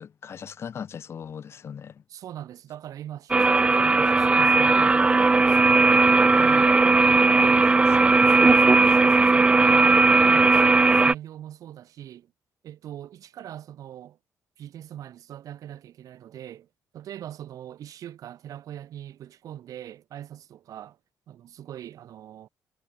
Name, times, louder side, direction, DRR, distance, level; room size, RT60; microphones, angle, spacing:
voice 1, 0.0-2.0, left 7 dB, 45° left, 1.3 m, -38 dB
voice 2, 2.1-5.8 6.3-6.8 7.0-7.7 8.3-12.3 12.6-14.2 14.6-16.7 16.9-21.0 21.3-22.5, right 11 dB, 65° right, 5.1 m, -42 dB
sound 1, 3.3-11.1, right 3 dB, 15° right, 0.6 m, -18 dB
cardioid pair, 125°, 6 cm